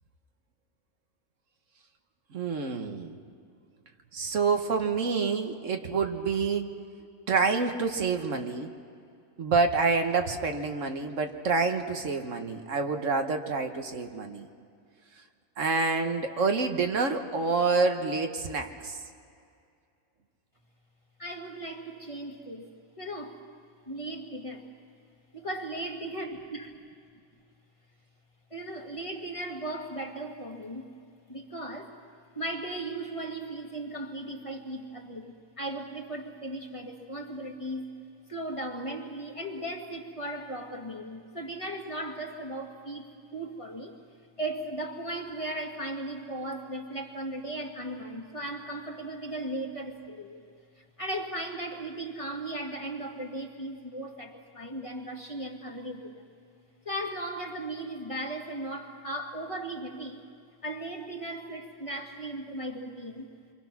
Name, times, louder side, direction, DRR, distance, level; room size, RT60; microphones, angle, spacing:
voice 1, 2.3-3.2 4.1-6.7 7.3-8.7 9.4-14.5 15.6-19.0, right 4 dB, 75° right, 5 dB, 1.6 m, -27 dB
voice 2, 21.2-22.7 23.0-23.4 23.9-24.7 25.3-26.7 28.5-30.8 31.3-32.0 32.3-37.8 38.3-44.0 44.4-50.4 50.8-56.2 56.9-60.2 60.6-63.3, right 1 dB, 25° left, 1 dB, 1.9 m, -37 dB
28.0 x 24.5 x 6.0 m, 2.3 s
omnidirectional pair, 1.3 m